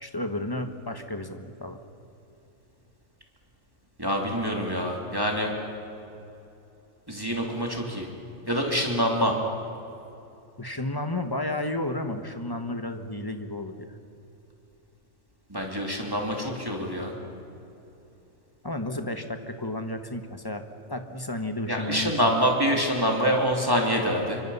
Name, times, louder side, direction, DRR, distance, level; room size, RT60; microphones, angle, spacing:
voice 1, 0.0-1.8 10.6-14.0 18.6-22.1, left 1 dB, 15° left, 7 dB, 1.2 m, -32 dB
voice 2, 4.0-5.5 7.1-8.1 8.5-9.4 15.5-17.1 21.7-24.4, equal, 15° right, 0 dB, 2.8 m, -26 dB
26.0 x 24.5 x 5.6 m, 2.9 s
omnidirectional pair, 1.5 m